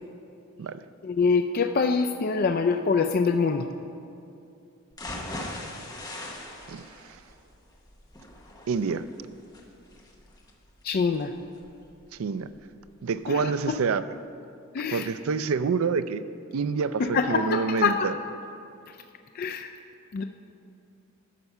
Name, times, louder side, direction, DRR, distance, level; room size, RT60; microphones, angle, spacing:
voice 1, 1.0-3.7 10.8-11.3 13.3-13.8 14.7-15.1 17.0-18.1 19.3-19.7 20.1-20.2, left 5 dB, 45° left, 7 dB, 0.3 m, -25 dB
sound 1, 4.9-12.9 13.3-13.4 13.8-13.9, left 1 dB, 15° left, 0.9 m, -41 dB
voice 2, 6.7-7.2 8.7-9.0 12.2-12.5 13.0-14.0 14.9-16.2 16.5-18.1, right 5 dB, 75° right, 13 dB, 0.4 m, -27 dB
11.5 x 6.8 x 5.4 m, 2.7 s
head